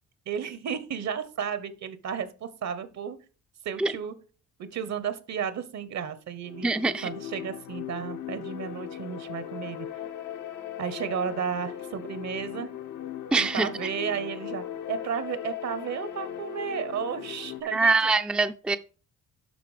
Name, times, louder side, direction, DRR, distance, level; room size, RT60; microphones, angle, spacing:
voice 1, 0.3-3.2 3.6-4.1 4.6-6.7 7.0-9.9 10.8-12.7 13.3-17.9, right 7 dB, 60° right, 1.2 m, -33 dB
sound 1, 6.4-17.6, left 10 dB, 80° left, 1.2 m, -38 dB
voice 2, 6.6-7.1 13.3-13.7 17.7-18.8, right 3 dB, 5° right, 0.5 m, -24 dB
12.0 x 4.0 x 5.0 m
cardioid pair, 90°, 30 cm